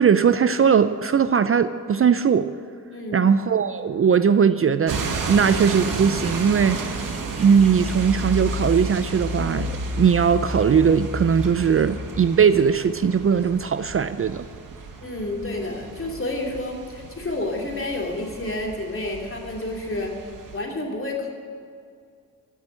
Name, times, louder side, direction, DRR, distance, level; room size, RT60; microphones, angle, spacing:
voice 1, 0.0-2.5 3.1-7.1 7.4-14.4, right 7 dB, 40° right, 12 dB, 0.5 m, -19 dB
voice 2, 2.9-3.3 15.0-20.1 20.5-21.3, left 2 dB, 35° left, 0 dB, 3.2 m, -30 dB
sound 1, 4.9-20.6, right 4 dB, 60° right, 1.8 m, -34 dB
sound 2, 7.0-12.2, left 2 dB, ahead, 2.8 m, -32 dB
15.5 x 6.3 x 10.0 m, 2.2 s
supercardioid pair, 55°, 35 cm